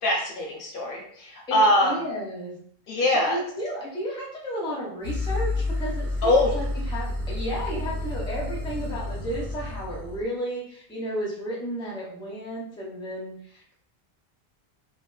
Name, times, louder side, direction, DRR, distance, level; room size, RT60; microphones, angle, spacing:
voice 1, 0.0-2.0 2.9-3.4 6.2-6.5, left 1 dB, 65° left, -1 dB, 0.7 m, -22 dB
voice 2, 1.5-2.6 3.1-13.7, equal, 5° left, -4 dB, 0.5 m, -33 dB
sound 1, 5.0-10.2, left 2 dB, 65° right, 1.2 m, -30 dB
2.6 x 2.3 x 2.2 m, 0.64 s
omnidirectional pair, 1.1 m